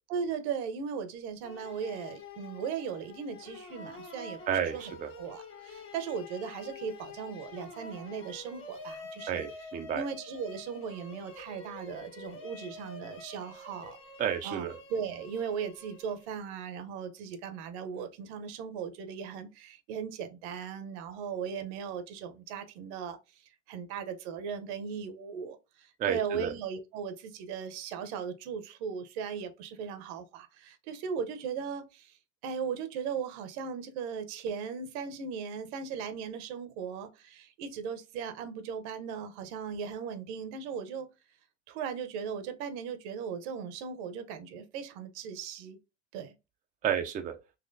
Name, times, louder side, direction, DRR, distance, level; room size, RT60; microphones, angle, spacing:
voice 1, 0.1-9.4 9.9-14.0 14.4-23.4 23.7-32.2 32.4-41.1 41.7-45.8 46.1-46.3, right 6 dB, 65° right, 0.9 m, -38 dB
sound 1, 1.4-16.5, left 3 dB, 30° left, 1.4 m, -47 dB
voice 2, 4.5-5.1 9.3-10.0 14.2-14.8 26.0-26.5 46.8-47.3, right 9 dB, 20° right, 0.5 m, -31 dB
4.2 x 2.9 x 2.6 m
supercardioid pair, 110°, 37 cm